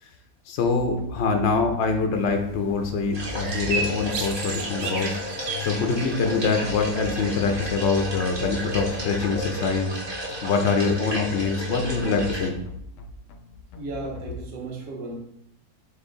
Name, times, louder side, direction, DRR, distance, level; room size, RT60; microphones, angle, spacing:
voice 1, 0.5-10.0 10.4-12.5, left 4 dB, 70° left, 4 dB, 0.6 m, -24 dB
sound 1, 0.7-14.4, left 2 dB, 90° left, 1.2 m, -39 dB
sound 2, 2.1-8.9, right 4 dB, 85° right, 0.5 m, -36 dB
sound 3, 3.1-12.5, equal, 25° right, 0.6 m, -33 dB
voice 2, 13.8-15.1, right 3 dB, 55° right, -1 dB, 1.3 m, -34 dB
4.3 x 3.1 x 3.8 m, 0.74 s
omnidirectional pair, 1.7 m